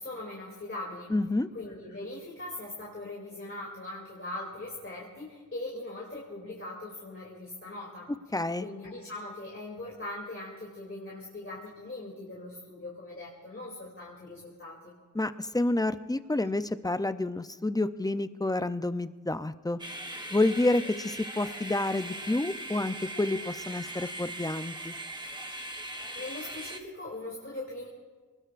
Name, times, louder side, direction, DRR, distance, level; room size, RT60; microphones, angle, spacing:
voice 1, 0.0-1.1 1.5-8.1 8.6-14.9 25.9-27.9, left 2 dB, 40° left, -5 dB, 2.8 m, -41 dB
voice 2, 1.1-1.5 8.3-8.7 15.1-19.8 20.3-24.9, left 2 dB, 10° left, 12 dB, 0.5 m, -29 dB
sound 1, 19.8-26.8, right 1 dB, 15° right, 1.2 m, -40 dB
27.0 x 19.0 x 2.5 m, 1.4 s
wide cardioid pair, 110°, 32 cm